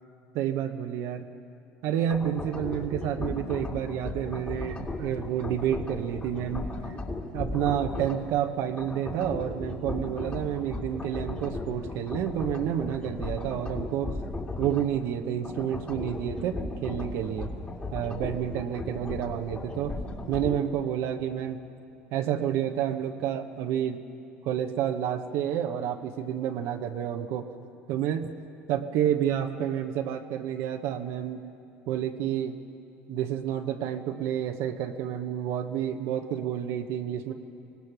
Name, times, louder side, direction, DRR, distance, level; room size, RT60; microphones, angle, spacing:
voice 1, 0.3-1.3 1.8-6.7 7.3-14.2 14.6-17.5 17.9-19.9 20.3-21.6 22.1-24.0 24.4-27.5 27.9-28.3 28.7-31.4 31.9-32.6 33.1-37.3, right 10 dB, 70° right, 4 dB, 1.0 m, -29 dB
sound 1, 2.0-8.4 8.6-15.0 15.3-20.7, left 2 dB, 25° left, 2.7 m, -36 dB
26.5 x 18.0 x 6.1 m, 2.6 s
supercardioid pair, 85°, 5 cm